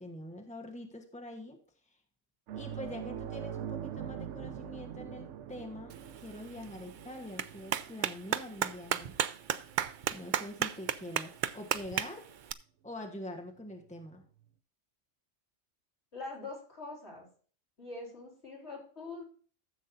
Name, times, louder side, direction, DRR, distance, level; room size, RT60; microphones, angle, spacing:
voice 1, 0.0-1.6 2.5-5.9 6.2-9.2 10.1-12.3 12.8-14.2, left 1 dB, 5° left, 3 dB, 1.2 m, -44 dB
sound 1, 2.5-11.4 11.8-11.9 14.0-14.1, right 9 dB, 80° right, 1.0 m, -44 dB
Clapping, 5.9-12.5, right 9 dB, 60° right, 0.5 m, -35 dB
voice 2, 16.1-17.3 17.8-19.2, left 3 dB, 65° left, -3 dB, 4.3 m, -43 dB
14.0 x 7.5 x 2.7 m, 0.42 s
omnidirectional pair, 1.2 m